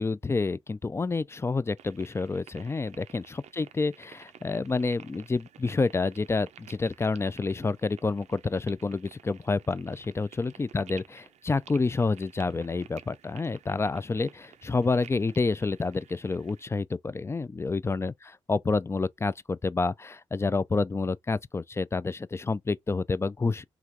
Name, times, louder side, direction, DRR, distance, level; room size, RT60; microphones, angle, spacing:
voice 1, 0.0-23.6, left 3 dB, 20° left, 0.3 m, -29 dB
sound 1, 1.8-16.6, right 9 dB, 70° right, 0.4 m, -53 dB
3.1 x 2.4 x 2.5 m
supercardioid pair, 40°, 12 cm